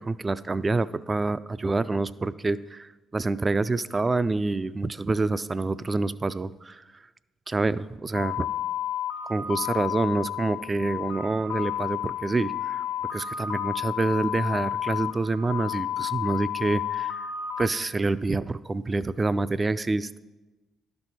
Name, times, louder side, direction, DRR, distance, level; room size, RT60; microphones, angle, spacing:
voice 1, 0.0-6.8 7.5-8.5 9.2-12.8 13.1-17.3 17.6-20.2, right 3 dB, 30° right, 16 dB, 0.3 m, -27 dB
sound 1, 8.1-17.7, left 10 dB, 80° left, 0.7 m, -31 dB
11.5 x 4.5 x 4.1 m, 1.1 s
hypercardioid pair, 50°, 0 cm